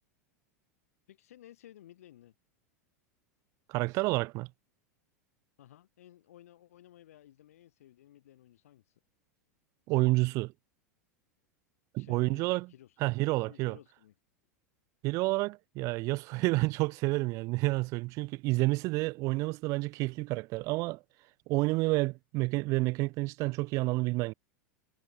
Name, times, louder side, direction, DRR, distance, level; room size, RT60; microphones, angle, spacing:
voice 1, 1.1-2.3 5.6-8.8 12.0-12.9 13.5-14.1, left 12 dB, 60° left, 6.2 m, -56 dB
voice 2, 3.7-4.5 9.9-10.5 11.9-12.7 13.0-13.8 15.0-21.0 21.5-24.3, right 23 dB, 40° right, 0.4 m, -29 dB
figure-of-eight pair, 85°, 9 cm